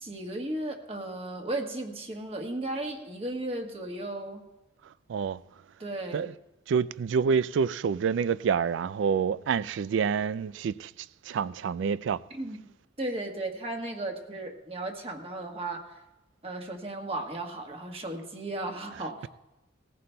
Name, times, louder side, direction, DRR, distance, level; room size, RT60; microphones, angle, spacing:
voice 1, 0.0-4.4 5.8-6.3 12.3-12.7 13.0-16.0 16.4-19.3, right 2 dB, 30° right, 1.3 m, -35 dB
voice 2, 6.7-10.9 11.3-12.2 18.9-19.3, right 6 dB, 70° right, 0.3 m, -27 dB
19.5 x 15.5 x 2.2 m
head